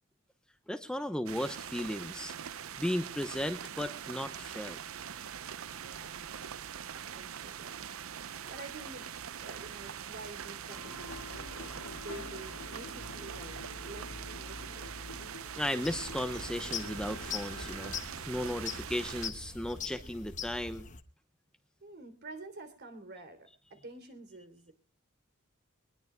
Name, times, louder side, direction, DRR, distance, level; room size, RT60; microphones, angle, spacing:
voice 1, 0.7-2.3 2.8-4.8 15.6-17.9 18.3-20.9, left 1 dB, 5° left, 8 dB, 0.8 m, -35 dB
sound 1, 1.3-19.3, right 8 dB, 70° right, 0.6 m, -43 dB
voice 2, 5.7-6.4 6.9-14.9 21.8-24.7, right 2 dB, 50° right, 9 dB, 3.3 m, -49 dB
sound 2, 10.7-18.0, left 2 dB, 90° left, 2.2 m, -47 dB
sound 3, 15.8-21.0, left 7 dB, 35° left, 1.1 m, -42 dB
23.0 x 20.0 x 2.2 m, 0.33 s
head